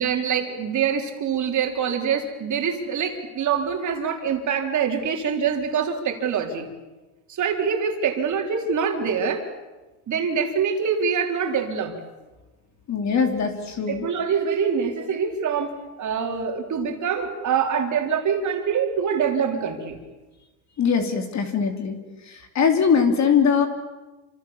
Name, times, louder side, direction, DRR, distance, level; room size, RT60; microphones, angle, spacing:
voice 1, 0.0-6.7 7.3-9.4 10.1-12.0 13.9-20.0, right 6 dB, 35° right, 4 dB, 4.0 m, -25 dB
voice 2, 12.9-14.1 20.8-22.0 22.3-23.7, left 6 dB, 35° left, 6 dB, 3.2 m, -21 dB
29.0 x 26.0 x 7.3 m, 1.2 s
cardioid pair, 140°, 49 cm